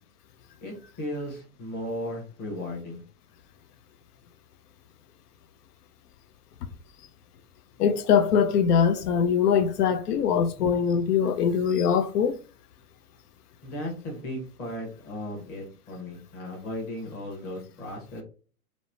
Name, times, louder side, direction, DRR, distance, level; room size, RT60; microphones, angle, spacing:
voice 1, 0.6-3.0 13.6-18.2, left 1 dB, 20° left, 0.8 m, -36 dB
voice 2, 7.8-12.3, left 7 dB, 85° left, 0.5 m, -22 dB
2.9 x 2.0 x 2.6 m
hypercardioid pair, 145°, 45 cm